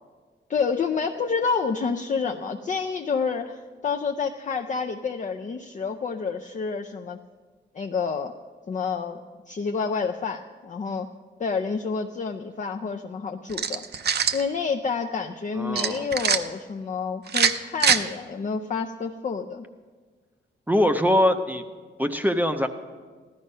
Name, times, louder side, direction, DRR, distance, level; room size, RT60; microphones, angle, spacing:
voice 1, 0.5-7.2 7.7-8.3 8.7-9.2 9.5-11.1 11.4-13.8 14.3-19.7, left 5 dB, 40° left, 3 dB, 0.5 m, -28 dB
sound 1, 13.5-14.4 15.8-16.4 17.3-18.0, right 7 dB, 55° right, 0.6 m, -22 dB
voice 2, 15.6-16.0 20.7-21.6 22.0-22.7, left 1 dB, 10° right, 6 dB, 0.5 m, -22 dB
15.0 x 12.5 x 5.5 m, 1.5 s
wide cardioid pair, 180°, 20 cm